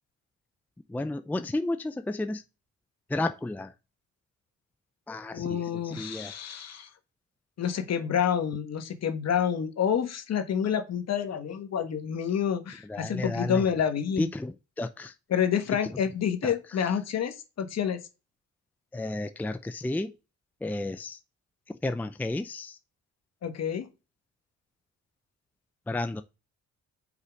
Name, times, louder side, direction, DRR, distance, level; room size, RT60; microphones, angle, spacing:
voice 1, 0.9-2.4 3.1-3.7 5.1-6.3 12.8-13.6 14.2-15.1 16.4-16.9 18.9-20.1 20.6-21.2 21.8-22.8 25.9-26.2, left 2 dB, 5° left, 0.5 m, -32 dB
voice 2, 5.3-6.9 7.6-14.3 15.3-18.0 23.4-23.9, left 8 dB, 60° left, 1.5 m, -28 dB
5.5 x 4.9 x 5.1 m
cardioid pair, 90°, 30 cm